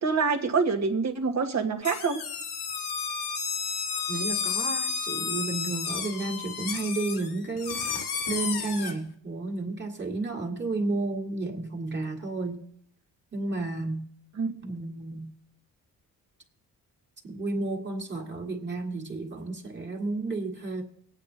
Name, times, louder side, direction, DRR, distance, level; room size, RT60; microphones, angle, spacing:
voice 1, 0.0-2.2 14.4-14.5, right 5 dB, 45° right, 6 dB, 1.4 m, -26 dB
sound 1, 1.8-8.9, left 6 dB, 85° left, 1.6 m, -32 dB
voice 2, 4.1-12.6 13.3-14.1 14.6-15.4 17.2-20.8, right 2 dB, 30° right, 0 dB, 2.0 m, -32 dB
24.0 x 8.9 x 2.8 m, 0.67 s
cardioid pair, 90°, 38 cm